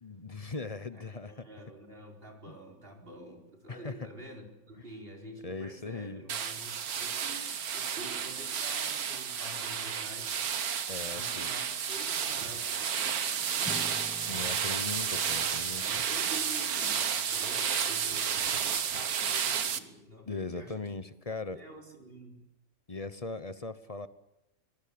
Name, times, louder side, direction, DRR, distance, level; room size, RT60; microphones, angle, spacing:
voice 1, 0.0-1.3 2.5-2.6 3.7-4.0 5.4-6.2 10.9-11.5 14.3-15.9 20.3-21.6 22.9-24.1, left 3 dB, 30° left, 13 dB, 0.9 m, -39 dB
voice 2, 0.9-14.1 15.8-21.0 21.5-22.4, right 1 dB, 40° right, 1 dB, 4.6 m, -48 dB
sound 1, 6.3-19.8, right 7 dB, 85° right, 1.7 m, -32 dB
Acoustic guitar / Strum, 13.6-18.4, equal, 5° left, 1.9 m, -49 dB
25.5 x 21.0 x 8.7 m, 0.87 s
omnidirectional pair, 1.5 m